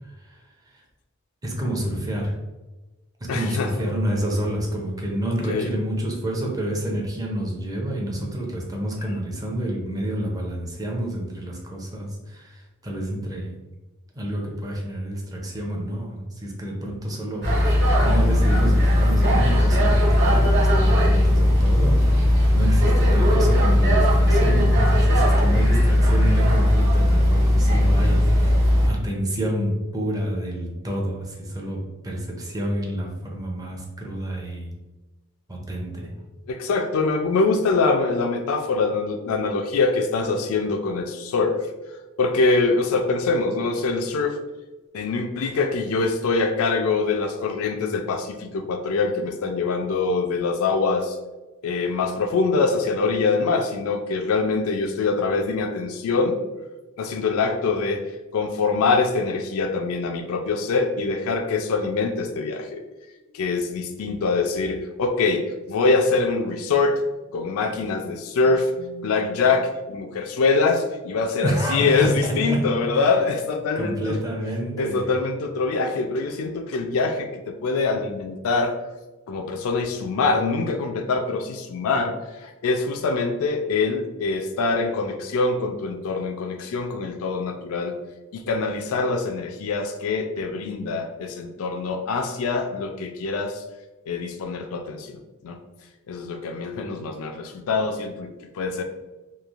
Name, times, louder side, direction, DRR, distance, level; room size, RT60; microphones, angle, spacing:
voice 1, 1.4-2.4 3.2-13.6 14.1-17.7 18.0-34.7 35.5-36.1 71.4-73.1 73.8-75.1, right 1 dB, 15° right, -1 dB, 0.5 m, -28 dB
voice 2, 3.3-3.9 5.5-5.7 17.9-18.0 36.5-41.6 42.2-44.4 44.9-51.2 51.6-56.4 57.0-58.0 58.3-62.8 63.3-67.0 67.3-74.2 74.8-78.8 79.3-88.0 88.3-93.6 94.1-95.6 96.1-98.8, left 4 dB, 70° left, 5 dB, 0.3 m, -24 dB
sound 1, 17.4-28.9, left 1 dB, 50° right, 1.2 m, -18 dB
3.0 x 2.4 x 2.4 m, 1.1 s
head